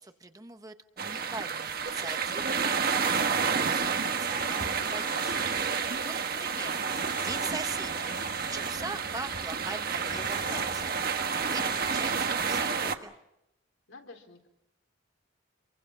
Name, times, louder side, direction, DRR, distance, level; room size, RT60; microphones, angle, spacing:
voice 1, 0.0-6.8 7.2-8.1 8.4-11.0 11.3-13.1, right 3 dB, 20° right, 8 dB, 1.0 m, -42 dB
sound 1, 1.0-12.9, right 5 dB, 50° right, 1.4 m, -30 dB
sound 2, 4.0-5.8 6.9-9.0 9.4-12.3, left 3 dB, 40° left, 1.4 m, -46 dB
voice 2, 6.4-6.8 13.9-14.5, left 3 dB, 80° left, 3 dB, 4.1 m, -49 dB
27.5 x 23.5 x 5.8 m, 0.86 s
head